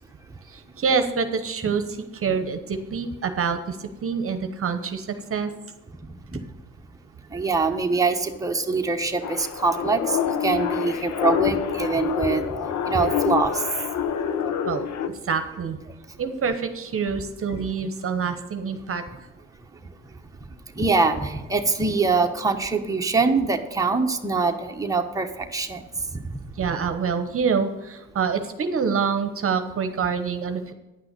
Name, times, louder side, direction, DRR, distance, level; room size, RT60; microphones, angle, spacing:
voice 1, 0.5-5.5 14.7-15.8 16.2-19.0 26.5-30.7, right 6 dB, 45° right, 9 dB, 0.9 m, -26 dB
voice 2, 7.3-10.2 10.4-12.5 12.9-13.6 20.8-25.8, right 4 dB, 10° right, 3 dB, 1.1 m, -23 dB
sound 1, 9.2-15.1, left 8 dB, 70° left, 0.9 m, -27 dB
9.9 x 5.9 x 6.7 m, 1.1 s
cardioid pair, 90°, 30 cm